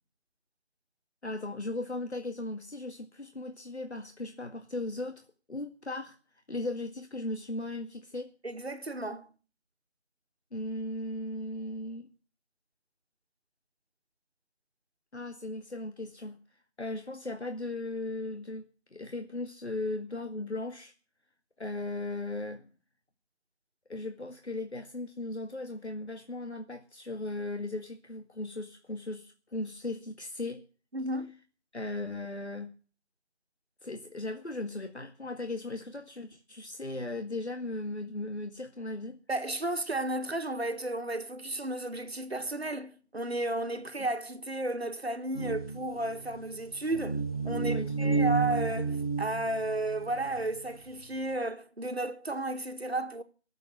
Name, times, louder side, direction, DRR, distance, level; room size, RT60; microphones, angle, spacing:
voice 1, 1.2-6.2 6.5-8.3 10.5-12.1 15.1-16.4 16.8-20.9 21.6-22.7 23.9-30.6 31.7-32.7 33.8-39.2 47.6-48.2, left 2 dB, 75° left, 2.0 m, -37 dB
voice 2, 8.4-9.3 30.9-31.3 39.3-53.2, right 1 dB, 65° right, 1.8 m, -33 dB
sound 1, 45.3-50.6, right 4 dB, 35° left, 1.6 m, -31 dB
18.5 x 7.9 x 6.7 m
figure-of-eight pair, 170°, 33 cm